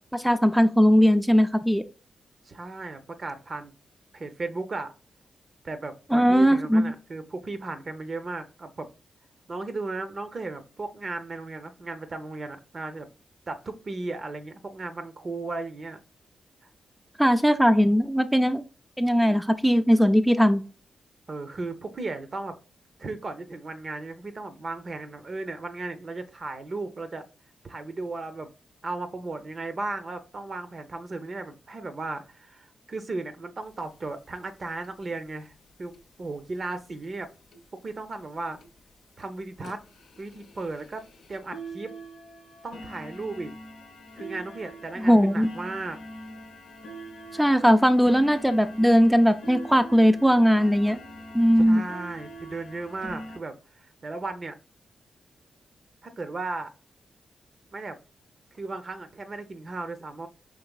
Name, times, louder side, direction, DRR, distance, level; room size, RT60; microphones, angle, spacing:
voice 1, 0.1-1.8 6.1-6.9 17.2-18.6 19.0-20.6 45.0-45.5 47.4-51.0 51.3-51.8, equal, 5° right, 8 dB, 0.4 m, -19 dB
voice 2, 2.5-3.7 4.1-4.9 5.6-8.9 9.5-13.1 13.5-16.0 21.3-22.6 23.0-27.2 27.6-28.5 28.8-35.5 35.8-35.9 36.2-37.3 37.7-38.6 39.2-39.8 40.2-41.0 41.3-41.9 42.6-43.5 44.2-46.0 51.6-54.5 56.0-56.7 57.7-58.0 58.5-60.3, right 3 dB, 50° right, 8 dB, 0.6 m, -35 dB
sound 1, 33.7-33.8 34.0-34.1 34.3-34.5 34.8-35.2 35.9-36.0 36.5-36.6 37.0-37.1 37.5-37.6 38.1-38.2 38.6-38.8 39.2-39.3 39.6-53.4, right 1 dB, 80° left, 0.6 m, -43 dB
4.8 x 3.1 x 2.3 m, 0.36 s
supercardioid pair, 45°, 0 cm